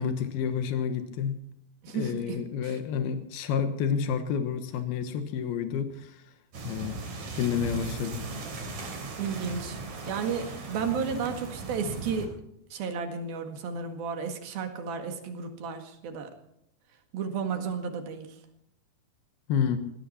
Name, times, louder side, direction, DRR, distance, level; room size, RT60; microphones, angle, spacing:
voice 1, 0.0-1.4 1.9-6.2 6.6-7.0 7.4-8.2 19.5-19.8, left 7 dB, 85° left, 8 dB, 3.2 m, -29 dB
voice 2, 1.8-2.8 9.2-9.8 10.1-12.4 12.7-16.3 17.1-18.4, right 6 dB, 75° right, 6 dB, 3.7 m, -33 dB
sound 1, 6.5-12.3, right 3 dB, 50° right, 4.1 m, -38 dB
20.5 x 16.0 x 4.3 m, 0.76 s
omnidirectional pair, 4.3 m